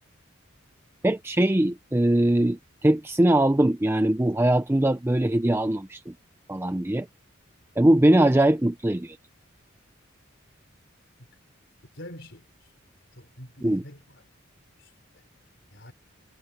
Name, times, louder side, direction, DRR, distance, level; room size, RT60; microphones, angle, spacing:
voice 1, 1.0-6.1 6.5-7.1 7.8-9.2 13.6-13.8, right 1 dB, 10° right, 0.5 m, -21 dB
voice 2, 11.9-12.7 13.1-14.3 14.8-15.9, left 1 dB, 55° left, 5.0 m, -47 dB
head